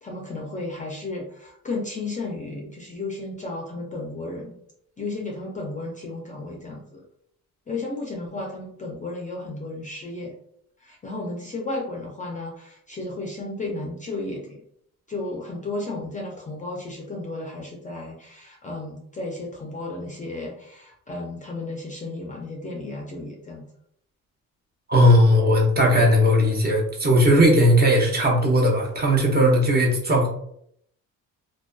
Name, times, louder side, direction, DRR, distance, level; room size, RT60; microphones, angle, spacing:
voice 1, 0.0-4.6 5.0-7.0 7.7-10.3 10.8-14.6 15.1-23.7, left 2 dB, 25° left, -1 dB, 0.4 m, -33 dB
voice 2, 24.9-30.3, equal, 30° right, -1 dB, 0.6 m, -18 dB
2.5 x 2.2 x 2.2 m, 0.71 s
cardioid pair, 105°, 34 cm